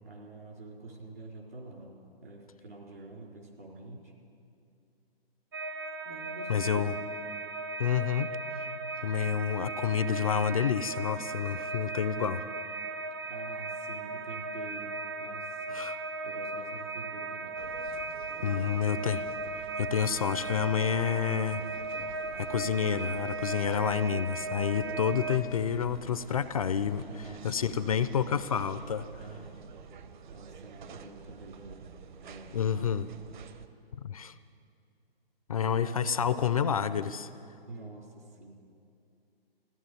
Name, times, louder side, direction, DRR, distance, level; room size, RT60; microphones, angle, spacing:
voice 1, 0.0-4.1 6.0-7.0 13.2-15.9 16.2-17.6 18.4-19.0 27.1-28.6 29.2-29.8 30.3-31.9 32.2-32.8 35.6-36.5 37.7-38.5, right 2 dB, 70° right, -1 dB, 4.1 m, -46 dB
sound 1, 5.5-25.4, right 3 dB, 25° right, 0.4 m, -37 dB
voice 2, 6.5-6.9 7.8-8.3 9.0-12.5 15.7-16.0 18.4-19.2 19.8-21.6 22.4-27.1 27.4-29.1 32.5-33.1 33.9-34.4 35.5-37.3, left 7 dB, 35° left, 13 dB, 0.4 m, -29 dB
sound 2, 17.6-33.7, right 6 dB, 50° right, 0.9 m, -49 dB
14.5 x 11.0 x 9.2 m, 2.5 s
figure-of-eight pair, 140°, 30 cm